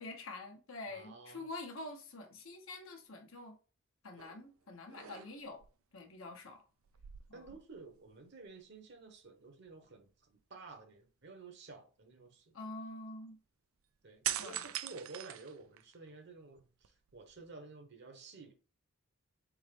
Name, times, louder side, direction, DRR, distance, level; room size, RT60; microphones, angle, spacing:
voice 1, 0.0-3.6 4.0-5.6 5.9-6.6 7.3-7.4 12.5-13.4 14.4-14.7, left 2 dB, 70° left, 1.0 m, -46 dB
voice 2, 0.9-1.5 7.3-12.5 14.0-18.5, right 3 dB, 55° right, 1.0 m, -52 dB
sound 1, 4.2-4.5 4.9-5.7 6.9-8.1 8.4-8.6 14.2-16.1 16.6-17.5, right 12 dB, 75° right, 0.4 m, -42 dB
4.2 x 3.6 x 3.4 m
head